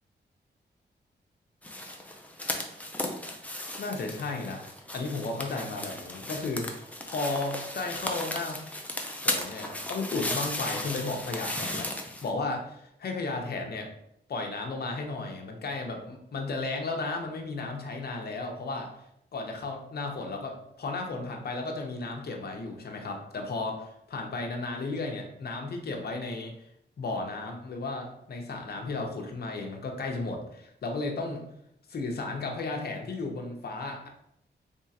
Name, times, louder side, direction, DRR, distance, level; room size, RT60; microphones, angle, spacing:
sound 1, 1.6-12.3, left 1 dB, 10° left, 0.5 m, -35 dB
voice 1, 3.8-8.6 9.2-11.9 12.2-13.9 14.3-18.9 19.3-26.5 27.0-31.4 31.9-34.1, left 3 dB, 60° left, 2 dB, 0.7 m, -34 dB
3.5 x 3.2 x 2.8 m, 0.75 s
wide cardioid pair, 100°, 18 cm